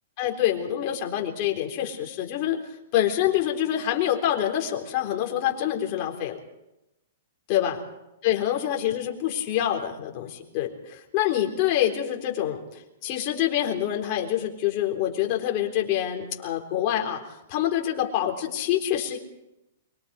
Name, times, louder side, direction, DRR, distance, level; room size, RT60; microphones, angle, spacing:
voice 1, 0.2-2.6 2.9-6.4 7.5-7.8 8.2-12.6 13.0-17.2 17.5-19.2, left 11 dB, 40° left, 1 dB, 3.8 m, -26 dB
23.5 x 23.0 x 4.9 m, 0.90 s
hypercardioid pair, 155°, 0 cm